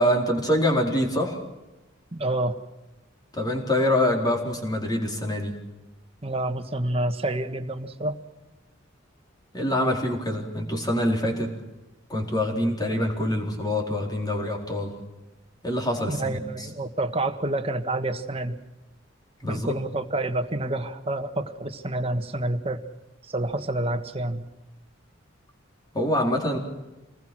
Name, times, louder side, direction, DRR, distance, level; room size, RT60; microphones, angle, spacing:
voice 1, 0.0-1.4 3.3-5.6 9.5-11.6 12.1-14.9 15.6-16.7 19.4-19.7 25.9-26.6, left 1 dB, 20° left, 1 dB, 4.4 m, -25 dB
voice 2, 2.1-2.6 6.2-8.2 16.1-18.6 19.5-22.8 23.3-24.4, right 1 dB, 30° right, 7 dB, 1.6 m, -28 dB
27.5 x 20.5 x 6.3 m, 1.0 s
head